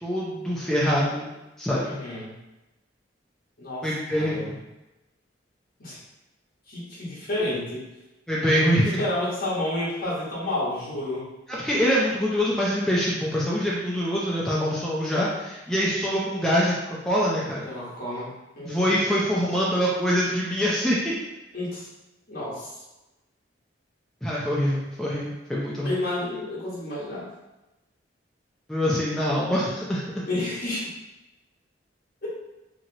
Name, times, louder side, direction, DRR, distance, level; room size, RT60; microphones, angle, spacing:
voice 1, 0.0-1.3 1.6-1.9 3.8-4.5 8.3-9.0 11.6-16.8 17.1-17.7 18.6-21.1 24.2-25.9 28.7-30.2, equal, 5° left, -6 dB, 0.4 m, -24 dB
voice 2, 1.8-2.3 3.6-4.6 5.8-6.0 6.7-7.8 8.5-11.3 15.1-15.5 17.6-19.0 21.5-21.9 22.3-22.7 25.8-27.3 30.3-30.9 32.2-32.3, left 1 dB, 50° left, -7 dB, 1.1 m, -31 dB
2.9 x 2.8 x 2.6 m, 1.0 s
head